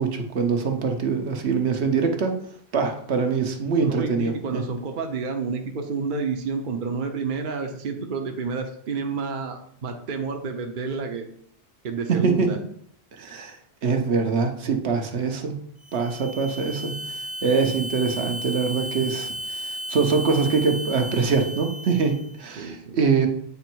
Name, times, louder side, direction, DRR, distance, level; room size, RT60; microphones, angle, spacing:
voice 1, 0.0-2.3 2.7-4.7 12.1-12.5 13.2-13.6 13.8-15.6 15.9-16.9 17.4-23.3, right 5 dB, 75° right, 4 dB, 1.1 m, -24 dB
voice 2, 3.8-11.2 11.8-12.6 22.6-23.0, right 5 dB, 50° right, 4 dB, 0.8 m, -29 dB
sound 1, 15.8-22.4, equal, 10° right, 0.7 m, -34 dB
8.1 x 3.1 x 4.5 m, 0.62 s
omnidirectional pair, 1.1 m